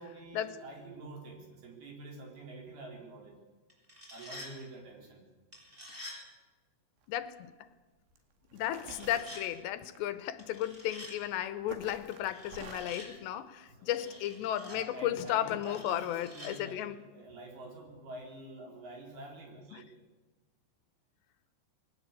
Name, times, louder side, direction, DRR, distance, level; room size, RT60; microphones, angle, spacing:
voice 1, 0.0-3.4 4.1-5.2 13.6-14.2 14.6-19.8, right 2 dB, 60° right, 1 dB, 6.0 m, -47 dB
sound 1, 3.7-4.5 5.5-6.2 8.8-9.4 10.4-11.1 12.1-13.1 13.9-14.8 15.6-16.5, equal, 10° right, 5.6 m, -48 dB
sound 2, 7.0-7.3 8.2-8.3 8.5-10.0 11.1-11.3 11.7-13.0, right 6 dB, 80° right, 4.2 m, -48 dB
voice 2, 7.1-7.5 8.5-17.0 19.7-19.8, left 12 dB, 80° left, 13 dB, 3.0 m, -34 dB
21.0 x 18.0 x 8.4 m, 1.2 s
omnidirectional pair, 5.1 m